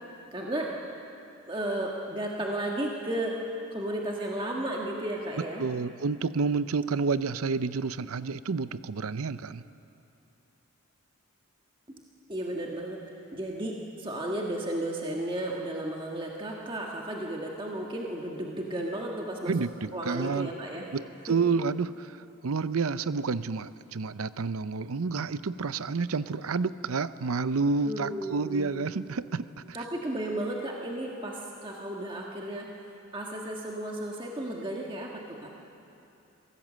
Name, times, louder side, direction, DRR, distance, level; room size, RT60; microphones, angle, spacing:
voice 1, 0.3-0.8 1.5-3.4 3.7-5.6 11.9-12.0 12.3-13.0 13.3-19.5 19.9-20.9 27.8-28.7 29.7-32.7 33.1-35.5, right 1 dB, 20° right, -2 dB, 1.5 m, -33 dB
voice 2, 5.4-9.6 19.5-20.5 20.9-22.2 22.4-29.8, right 4 dB, 80° right, 15 dB, 0.6 m, -29 dB
24.0 x 17.0 x 7.5 m, 2.8 s
head